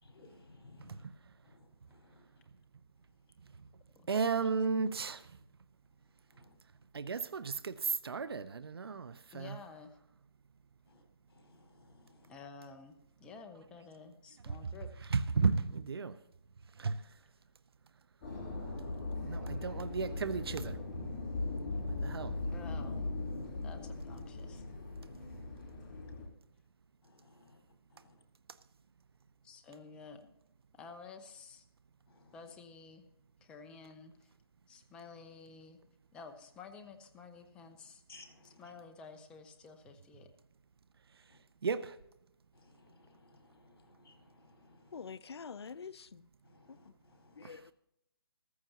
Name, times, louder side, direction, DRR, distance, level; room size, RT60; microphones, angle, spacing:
voice 1, 0.0-1.0 1.4-2.2 6.3-6.5 10.9-11.0 11.3-12.3 18.6-18.9 21.9-22.1 27.0-27.6 27.9-28.1 32.1-32.4 38.1-38.6 41.3-41.4 42.5-45.1 46.4-47.6, left 3 dB, 70° left, 4.2 m, -61 dB
voice 2, 4.1-5.3 6.9-9.6 14.4-14.5 15.1-16.2 16.8-17.0 19.2-20.8 21.9-22.4 41.6-42.0 47.4-47.6, right 5 dB, 75° right, 0.7 m, -34 dB
voice 3, 9.3-10.0 12.3-12.9 13.2-15.1 22.5-23.1 23.6-24.6 29.4-30.3 30.7-31.6 32.3-33.0 33.4-34.3 34.7-35.8 36.1-38.0 38.4-40.3, left 5 dB, 5° left, 0.6 m, -52 dB
sound 1, 18.2-26.3, left 2 dB, 25° left, 2.8 m, -39 dB
voice 4, 44.9-46.2 46.7-46.8 47.4-47.7, left 6 dB, 85° left, 0.4 m, -46 dB
15.0 x 14.5 x 2.9 m
hypercardioid pair, 160°, 13 cm